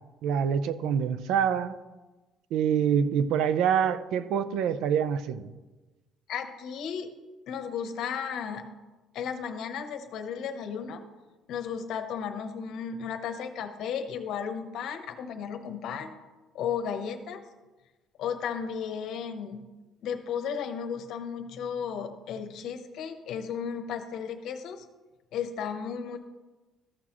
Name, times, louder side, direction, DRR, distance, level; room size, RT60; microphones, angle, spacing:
voice 1, 0.2-1.7 2.5-5.5, right 8 dB, 85° right, 0.4 m, -26 dB
voice 2, 6.3-7.1 7.5-8.7 9.1-11.0 11.5-16.1 16.5-17.4 18.2-19.7 20.0-24.8 25.3-26.2, left 7 dB, 70° left, 0.9 m, -34 dB
14.0 x 6.2 x 3.0 m
cardioid pair, 125°, 0 cm